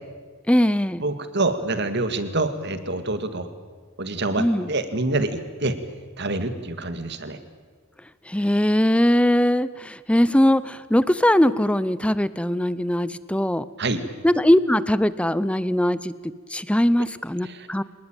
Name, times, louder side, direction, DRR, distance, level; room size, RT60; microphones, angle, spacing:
voice 1, 0.5-1.0 4.4-4.7 8.3-13.7 14.2-16.1 16.5-17.8, left 1 dB, 5° left, 16 dB, 0.7 m, -20 dB
voice 2, 1.0-3.5 4.0-5.8 6.2-7.4 13.8-14.0 17.4-17.7, right 2 dB, 55° right, 10 dB, 2.1 m, -26 dB
25.5 x 19.5 x 9.1 m, 1.5 s
head